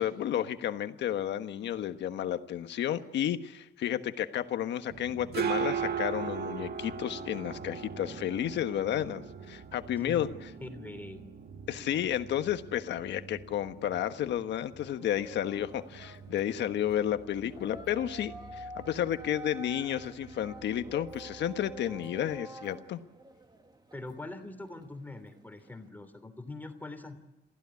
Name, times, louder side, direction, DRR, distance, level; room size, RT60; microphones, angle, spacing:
voice 1, 0.0-9.2 9.5-10.5 11.7-23.0, left 11 dB, 85° left, 9 dB, 1.4 m, -32 dB
sound 1, 4.9-22.4, right 7 dB, 65° right, 1.9 m, -40 dB
voice 2, 10.6-11.3 23.9-27.2, left 2 dB, 10° left, 7 dB, 3.1 m, -43 dB
sound 2, 15.0-25.9, right 2 dB, 25° right, 2.2 m, -49 dB
28.0 x 15.5 x 9.7 m, 1.1 s
cardioid pair, 105°, 18 cm